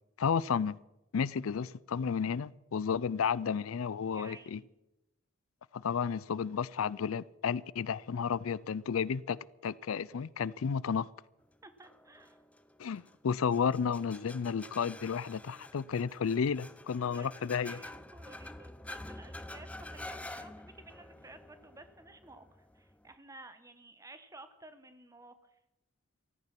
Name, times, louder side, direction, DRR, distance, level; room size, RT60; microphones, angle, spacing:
voice 1, 0.2-0.8 1.1-4.6 5.7-11.1 12.8-17.8, left 6 dB, 85° left, 0.4 m, -32 dB
voice 2, 4.1-4.7 11.6-12.4 17.0-22.5 22.7-25.3, right 2 dB, 15° right, 1.0 m, -53 dB
sound 1, 11.8-23.1, left 1 dB, 5° left, 0.5 m, -48 dB
14.5 x 14.0 x 5.9 m
head